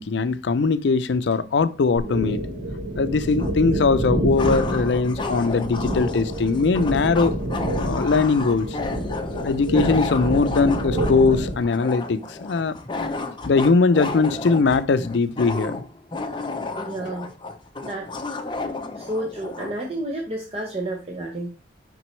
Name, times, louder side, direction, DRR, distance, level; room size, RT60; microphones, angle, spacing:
voice 1, 0.0-2.4 3.0-7.4 7.8-8.8 9.4-12.7 13.5-15.8, left 4 dB, 70° left, 0.4 m, -20 dB
sound 1, 2.0-11.6, right 1 dB, 60° right, 1.2 m, -28 dB
sound 2, 3.4-3.5 4.4-19.8, left 3 dB, 25° left, 0.6 m, -32 dB
voice 2, 16.8-17.3 17.8-18.2 19.0-21.5, right 1 dB, 35° right, 0.8 m, -30 dB
6.0 x 5.2 x 3.2 m
head